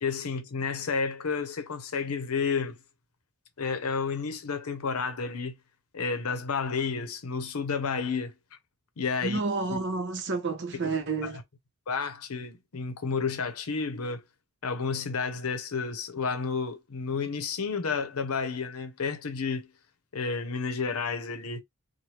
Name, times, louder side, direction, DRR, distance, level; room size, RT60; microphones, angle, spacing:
voice 1, 0.0-2.8 3.6-5.6 5.9-8.3 9.0-9.4 9.7-9.8 11.2-11.3 11.9-14.2 14.6-19.7 20.1-21.6, left 5 dB, 85° left, 0.7 m, -31 dB
voice 2, 9.2-11.4, right 4 dB, 55° right, 0.8 m, -30 dB
3.2 x 2.2 x 2.9 m
head